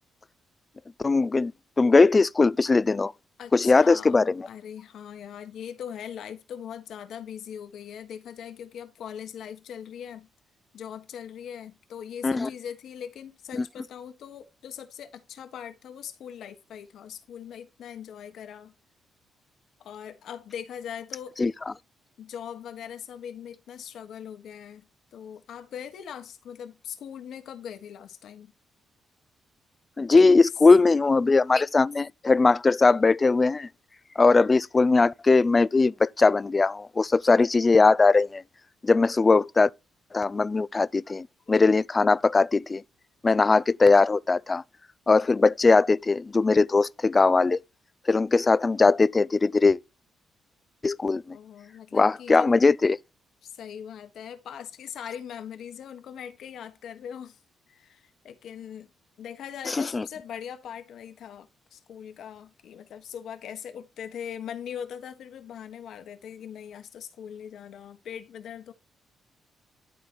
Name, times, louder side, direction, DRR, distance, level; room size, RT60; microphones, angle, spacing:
voice 1, 1.0-1.5 1.8-3.1 3.5-4.3 12.2-12.5 21.4-21.5 30.0-33.7 34.2-38.4 38.8-39.7 40.1-42.8 43.2-44.6 45.1-47.6 48.1-49.8 50.8-51.4 51.9-53.0 59.7-60.0, left 3 dB, 25° left, 0.4 m, -20 dB
voice 2, 3.4-10.3 10.7-18.7 19.8-21.3 22.2-28.5 30.1-30.3 51.3-52.5 53.4-57.4 57.7-58.9 59.2-68.7, left 8 dB, 70° left, 1.4 m, -40 dB
12.0 x 4.1 x 4.6 m
cardioid pair, 100°, 0 cm